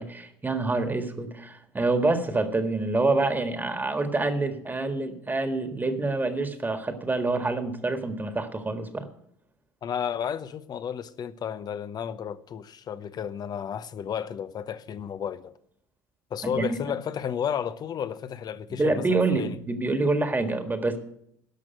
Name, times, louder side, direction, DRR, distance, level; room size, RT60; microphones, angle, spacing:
voice 1, 0.0-9.0 16.4-16.8 18.8-21.0, right 3 dB, 20° right, 1.7 m, -26 dB
voice 2, 9.8-15.5 16.3-19.6, left 8 dB, 45° left, 0.8 m, -32 dB
12.0 x 6.1 x 9.1 m
hypercardioid pair, 70°, 10 cm